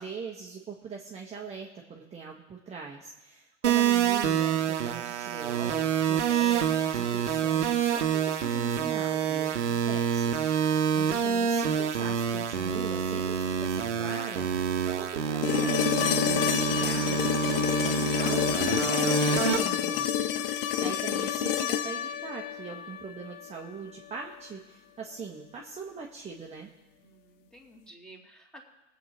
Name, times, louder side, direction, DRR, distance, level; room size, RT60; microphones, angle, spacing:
voice 1, 0.0-10.3 10.6-26.7, right 5 dB, 20° right, 0 dB, 1.4 m, -41 dB
sound 1, 3.6-19.6, right 8 dB, 75° right, 1.3 m, -27 dB
sound 2, 15.4-23.5 25.6-25.7, left 10 dB, 50° left, 0.9 m, -29 dB
voice 2, 20.6-21.0 27.0-28.6, right 1 dB, ahead, -2 dB, 3.0 m, -52 dB
22.5 x 8.3 x 3.1 m, 1.1 s
hypercardioid pair, 95°, 36 cm